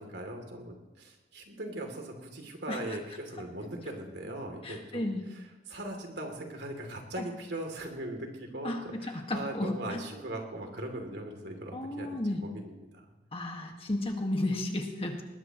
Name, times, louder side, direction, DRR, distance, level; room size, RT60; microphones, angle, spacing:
voice 1, 0.0-12.1 12.4-13.0, right 1 dB, 75° right, 3 dB, 2.9 m, -40 dB
voice 2, 4.6-5.3 7.2-7.3 8.6-10.0 11.7-12.4 13.3-15.2, left 1 dB, 35° left, 3 dB, 1.7 m, -33 dB
20.5 x 20.0 x 3.1 m, 1.1 s
head